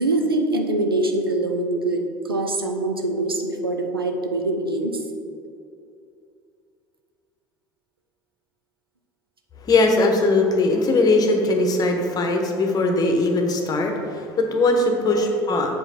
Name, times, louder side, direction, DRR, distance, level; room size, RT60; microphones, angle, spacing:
voice 1, 0.0-5.0 15.1-15.3, right 2 dB, 85° right, 3 dB, 0.6 m, -24 dB
voice 2, 9.6-15.8, left 2 dB, 35° left, 3 dB, 1.0 m, -20 dB
7.3 x 5.0 x 4.3 m, 2.5 s
figure-of-eight pair, 65°, 12 cm